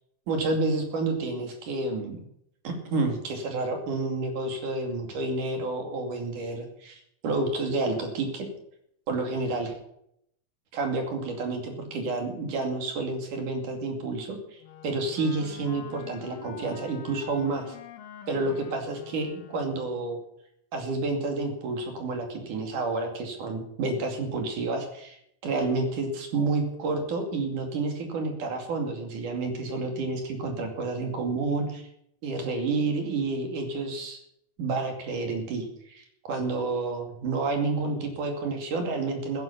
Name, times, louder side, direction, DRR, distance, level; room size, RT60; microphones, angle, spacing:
voice 1, 0.3-2.2 2.6-8.5 9.1-9.7 10.7-14.6 14.8-17.8 18.3-20.2 20.7-31.8 32.2-34.2 34.6-39.4, right 3 dB, 65° right, 4 dB, 3.9 m, -30 dB
Wind instrument woodwind instrument, 14.6-20.0, left 7 dB, 70° left, 2.8 m, -45 dB
14.5 x 10.5 x 6.9 m, 0.73 s
omnidirectional pair, 4.0 m